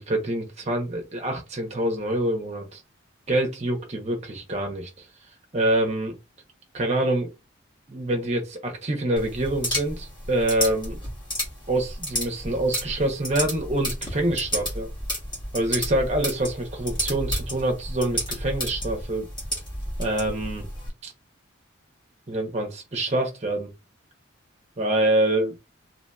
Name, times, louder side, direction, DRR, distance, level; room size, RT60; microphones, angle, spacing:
voice 1, 0.1-2.8 3.3-5.1 5.5-6.1 6.7-7.3 7.9-11.0 11.7-14.9 15.5-19.3 20.0-20.7 21.0-21.1 22.3-23.7 24.8-25.5, right 1 dB, 30° right, 0.7 m, -26 dB
sound 1, 9.2-20.9, equal, 20° left, 1.1 m, -32 dB
2.7 x 2.7 x 2.2 m
head